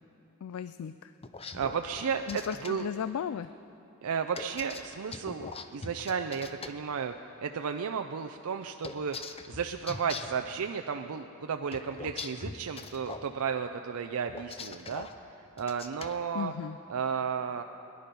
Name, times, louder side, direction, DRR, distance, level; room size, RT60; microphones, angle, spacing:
voice 1, 0.4-1.1 2.3-3.5 16.3-16.8, left 8 dB, 70° left, 13 dB, 0.3 m, -35 dB
sound 1, 1.2-2.7 4.3-6.7 8.8-10.4 11.7-13.3 14.3-15.1 15.6-16.1, left 4 dB, 25° left, 0.6 m, -41 dB
voice 2, 1.5-2.9 4.0-7.1 7.4-15.1 15.6-16.5 16.9-17.6, right 6 dB, 85° right, 6 dB, 0.5 m, -33 dB
22.0 x 10.5 x 5.3 m, 2.7 s
head